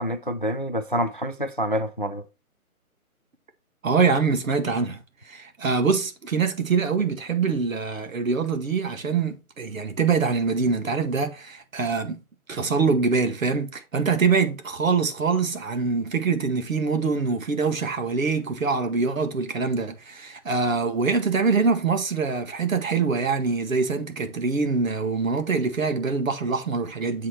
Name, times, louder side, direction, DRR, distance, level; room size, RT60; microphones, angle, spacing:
voice 1, 0.0-2.2, equal, 40° left, 0.4 m, -27 dB
voice 2, 3.8-12.2 12.5-27.3, right 4 dB, 65° right, 1.7 m, -24 dB
7.6 x 4.2 x 4.3 m
hypercardioid pair, 175°, 44 cm